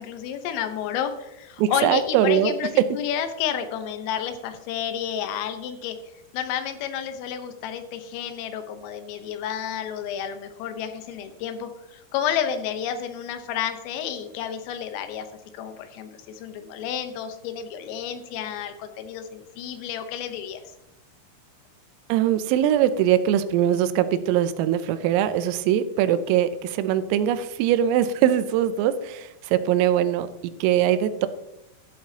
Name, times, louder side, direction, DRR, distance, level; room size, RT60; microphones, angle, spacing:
voice 1, 0.0-6.0 6.3-15.3 15.5-20.6 26.1-26.2, left 9 dB, 85° left, 8 dB, 3.6 m, -30 dB
voice 2, 1.6-2.5 2.8-2.9 22.1-31.3, right 10 dB, 85° right, 12 dB, 3.3 m, -22 dB
13.0 x 11.5 x 2.9 m, 0.89 s
omnidirectional pair, 5.8 m